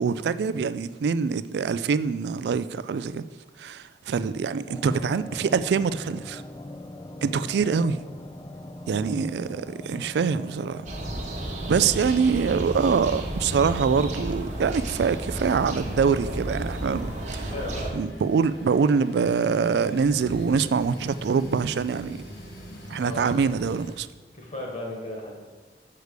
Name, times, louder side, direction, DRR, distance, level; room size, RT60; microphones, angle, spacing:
voice 1, 0.0-3.2 3.6-6.4 7.2-8.0 8.9-10.8 11.7-17.5 18.0-22.2 22.9-24.1, right 5 dB, 70° right, 14 dB, 0.3 m, -24 dB
sound 1, 4.7-23.3, left 1 dB, 20° left, 0.3 m, -42 dB
sound 2, 10.9-17.9, right 1 dB, 45° right, 1.0 m, -32 dB
sound 3, 15.5-23.9, equal, 75° left, 2.3 m, -44 dB
voice 2, 17.5-18.0 23.0-23.4 24.3-25.4, left 1 dB, 40° left, -1 dB, 1.8 m, -35 dB
6.6 x 4.7 x 6.6 m, 1.3 s
head